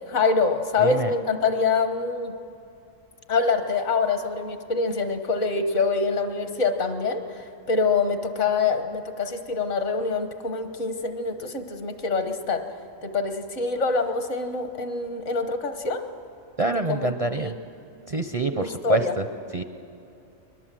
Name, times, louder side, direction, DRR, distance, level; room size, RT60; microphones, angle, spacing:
voice 1, 0.1-2.3 3.3-7.4 7.7-12.6 13.0-16.0 16.9-17.6 18.5-19.1, left 4 dB, 60° left, 7 dB, 1.6 m, -25 dB
voice 2, 0.8-1.1 16.6-17.5 18.1-19.2 19.5-19.6, right 3 dB, 45° right, 8 dB, 0.4 m, -26 dB
22.0 x 21.0 x 7.5 m, 2.8 s
omnidirectional pair, 1.4 m